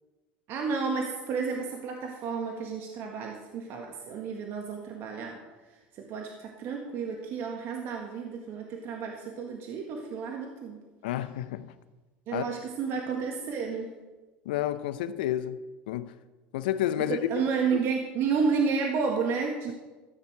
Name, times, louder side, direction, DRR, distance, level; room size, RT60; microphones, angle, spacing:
voice 1, 0.5-5.4 5.9-10.8 12.3-13.9 17.0-19.7, right 5 dB, 55° right, 1.7 m, -31 dB
voice 2, 11.0-11.7 12.3-12.5 14.4-15.6 15.9-16.1 16.5-17.2, left 12 dB, 85° left, 0.7 m, -30 dB
14.0 x 8.5 x 4.7 m
supercardioid pair, 105°, 5 cm